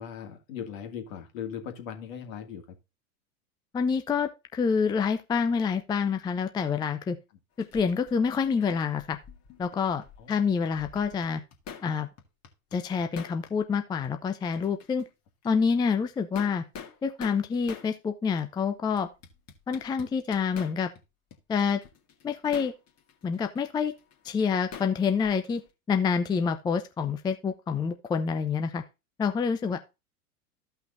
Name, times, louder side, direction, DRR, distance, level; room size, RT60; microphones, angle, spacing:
voice 1, 0.0-2.6 10.2-10.5, left 8 dB, 55° left, 2.3 m, -39 dB
voice 2, 3.7-7.2 7.6-9.2 9.6-11.4 11.8-12.1 12.7-15.1 15.4-16.6 17.0-19.1 19.7-20.9 21.5-21.8 22.2-22.7 23.2-23.9 24.2-25.6 25.9-28.8 29.2-29.8, left 6 dB, 10° left, 0.5 m, -27 dB
sound 1, 7.6-10.4 10.7-11.9 12.2-13.8 14.0-14.1 14.5-15.1 15.4-15.5 16.1-17.9 18.4-18.5 19.0-21.0 21.3-25.7, left 6 dB, 35° left, 2.0 m, -46 dB
14.0 x 5.7 x 2.6 m
hypercardioid pair, 95°, 46 cm